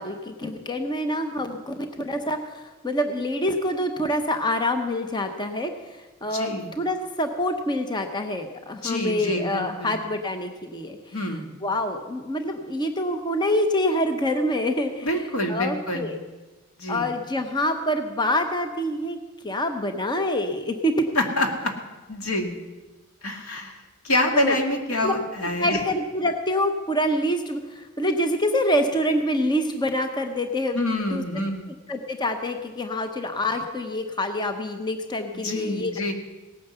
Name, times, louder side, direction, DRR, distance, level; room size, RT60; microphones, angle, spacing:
voice 1, 0.0-11.0 11.6-15.1 15.5-16.2 16.9-19.2 19.4-21.0 24.3-24.6 25.0-25.1 25.6-30.8 31.1-31.2 31.9-35.9, left 1 dB, 20° left, 6 dB, 0.9 m, -26 dB
voice 2, 6.3-6.7 8.8-10.0 11.1-11.6 15.0-16.1 16.8-17.1 21.2-21.7 22.1-22.6 23.2-25.8 30.7-31.7 35.3-36.1, left 1 dB, 80° left, 4 dB, 2.1 m, -26 dB
17.5 x 9.4 x 6.9 m, 1.2 s
head